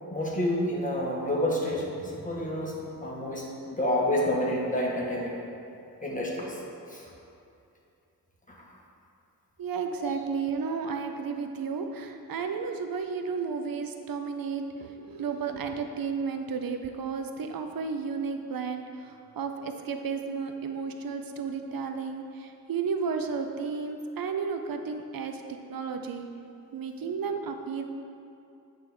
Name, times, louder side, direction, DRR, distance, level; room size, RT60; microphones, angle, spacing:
voice 1, 0.1-5.3 6.0-6.6 6.9-7.0 8.5-8.6 10.0-10.1, left 1 dB, 20° left, -4 dB, 1.6 m, -29 dB
voice 2, 9.6-25.4 25.7-26.2 26.7-27.8, right 5 dB, 70° right, 6 dB, 0.6 m, -33 dB
9.5 x 3.5 x 6.1 m, 2.6 s
wide cardioid pair, 80°, 36 cm